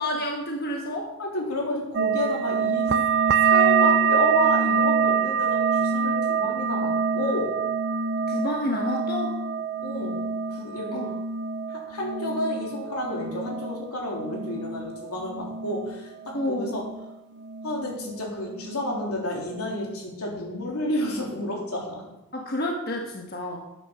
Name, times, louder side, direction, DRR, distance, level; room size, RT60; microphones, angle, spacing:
voice 1, 0.0-1.1 8.3-9.4 10.9-11.1 16.3-16.8 22.3-23.6, left 1 dB, 45° left, 0 dB, 1.3 m, -29 dB
voice 2, 1.2-3.0 3.4-7.5 9.8-10.2 10.5-11.0 11.7-16.8 17.6-22.0, left 1 dB, 85° left, -2 dB, 3.3 m, -31 dB
sound 1, 1.9-17.1 17.4-18.2 18.5-19.2 19.6-20.0, right 6 dB, 50° right, 0.4 m, -25 dB
12.0 x 8.9 x 5.1 m, 0.96 s
head